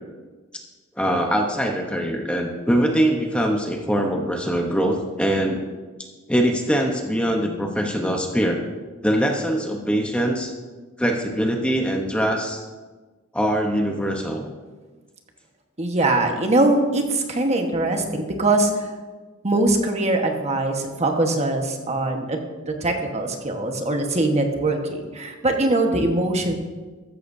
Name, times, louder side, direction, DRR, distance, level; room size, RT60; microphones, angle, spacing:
voice 1, 1.0-5.6 6.3-8.6 9.0-10.5 11.0-12.6 13.3-14.5, equal, 5° left, 2 dB, 0.9 m, -22 dB
voice 2, 15.8-18.7 19.4-22.4 22.7-26.6, right 2 dB, 30° right, 3 dB, 1.3 m, -22 dB
14.0 x 13.5 x 2.7 m, 1.3 s
head